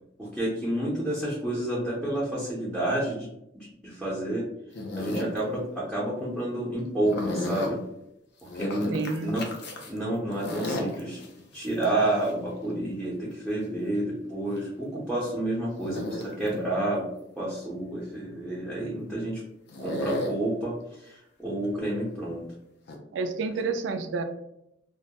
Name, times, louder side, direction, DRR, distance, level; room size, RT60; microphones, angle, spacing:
voice 1, 0.2-3.3 3.5-4.4 4.9-7.8 8.5-9.4 9.9-11.2 11.5-17.1 17.4-19.4 19.8-22.4, right 1 dB, ahead, -8 dB, 0.6 m, -30 dB
sound 1, 4.7-5.4 7.0-7.7 8.4-10.0 10.3-12.3 14.6-14.7 15.8-16.6 19.7-20.3 21.6-21.8 22.9-23.0, left 1 dB, 60° left, 0.5 m, -33 dB
voice 2, 8.9-9.3 23.1-24.2, right 4 dB, 70° right, 7 dB, 0.3 m, -29 dB
2.2 x 2.0 x 2.8 m, 0.81 s
head